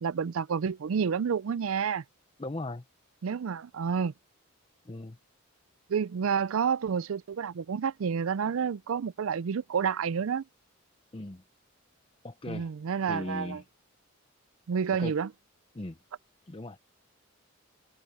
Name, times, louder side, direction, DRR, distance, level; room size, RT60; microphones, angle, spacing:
voice 1, 0.0-2.0 3.2-4.1 5.9-10.4 12.5-13.6 14.7-15.3, right 6 dB, 75° right, 0.4 m, -29 dB
voice 2, 2.4-2.8 4.9-5.2 11.1-11.4 12.2-12.7 13.1-13.6 15.0-15.1 15.7-16.0 16.5-16.8, left 2 dB, 25° left, 0.7 m, -37 dB
head